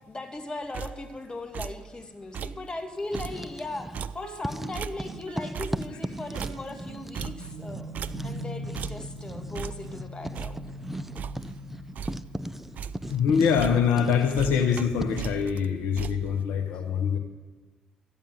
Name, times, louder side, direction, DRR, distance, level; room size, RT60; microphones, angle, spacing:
voice 1, 0.1-10.6 16.7-16.8, left 2 dB, 25° left, 5 dB, 2.3 m, -38 dB
sound 1, 0.7-1.2 1.5-1.9 2.2-2.7 3.0-5.3 5.5-8.5 8.7-9.2 9.5-10.0 10.3-11.7 12.0-12.3 12.6-13.2 13.5-14.1 14.4-16.4, right 7 dB, 55° right, 0.4 m, -38 dB
Writing, 3.0-4.1 4.4-15.4, right 1 dB, 5° right, 0.7 m, -38 dB
sound 2, 4.2-14.0, right 1 dB, 75° right, 1.0 m, -43 dB
voice 2, 13.1-17.2, left 7 dB, 70° left, 5 dB, 1.0 m, -24 dB
13.5 x 9.0 x 9.0 m, 1.3 s
hypercardioid pair, 45°, 3 cm